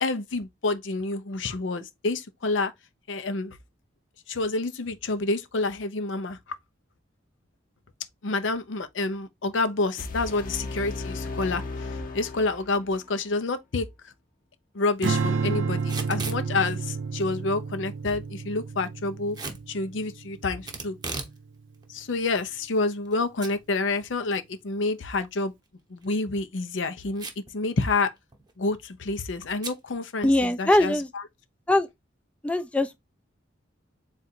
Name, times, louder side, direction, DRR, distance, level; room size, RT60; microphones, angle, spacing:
voice 1, 0.0-2.7 3.1-3.6 4.3-6.4 8.2-14.1 14.7-19.4 19.7-21.0 21.9-25.5 25.9-27.3 27.5-28.1 28.6-31.2, left 3 dB, 80° left, 0.6 m, -28 dB
sound 1, 10.0-13.0, left 3 dB, 45° left, 0.8 m, -35 dB
Strum, 15.0-21.4, right 5 dB, 75° right, 0.5 m, -31 dB
Packing tape duct tape / Tearing, 15.8-16.4 19.3-19.6 20.7-21.4 21.7-21.8 22.5-23.1 23.4-23.5 23.9-24.0 26.0-26.2 27.1-27.5 27.8-27.9 28.2-28.5 29.6-29.8, right 4 dB, 20° right, 0.8 m, -36 dB
voice 2, 30.2-31.1 31.7-31.9 32.4-33.0, left 1 dB, 5° left, 0.3 m, -22 dB
3.8 x 2.5 x 4.2 m
head